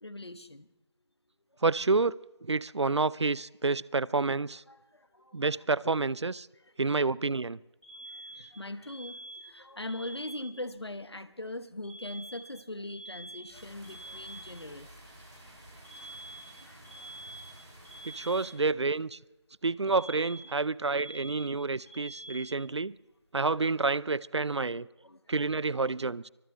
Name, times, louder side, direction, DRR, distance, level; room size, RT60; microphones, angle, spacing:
voice 1, 0.0-0.7 4.7-5.3 8.5-9.2 9.4-14.9 16.6-16.8 25.0-25.2, left 1 dB, 65° left, 1.0 m, -41 dB
voice 2, 1.6-2.2 2.4-4.6 5.3-6.5 6.8-7.6 18.0-19.2 19.6-22.9 23.3-24.9 25.3-26.3, right 3 dB, 75° right, 0.4 m, -29 dB
Alarm, 7.8-10.8 11.8-14.8 15.8-18.8 19.9-22.8, right 1 dB, 30° left, 3.4 m, -47 dB
sound 1, 13.5-18.5, right 1 dB, 10° right, 3.3 m, -52 dB
24.0 x 22.0 x 2.2 m
figure-of-eight pair, 170°, 15 cm